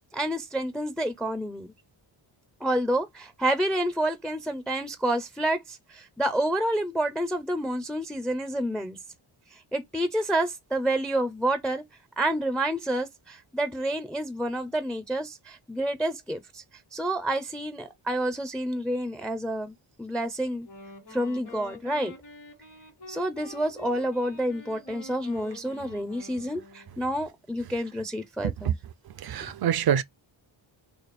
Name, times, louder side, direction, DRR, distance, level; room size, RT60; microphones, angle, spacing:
voice 1, 0.1-1.7 2.6-9.0 9.7-11.8 12.2-16.6 16.9-20.7 21.1-22.1 23.1-28.7, right 1 dB, ahead, 0.4 m, -29 dB
Wind instrument woodwind instrument, 20.5-27.1, left 3 dB, 60° left, 1.4 m, -46 dB
voice 2, 29.2-30.0, right 9 dB, 55° right, 0.5 m, -25 dB
3.3 x 2.4 x 4.0 m
wide cardioid pair, 110°, 48 cm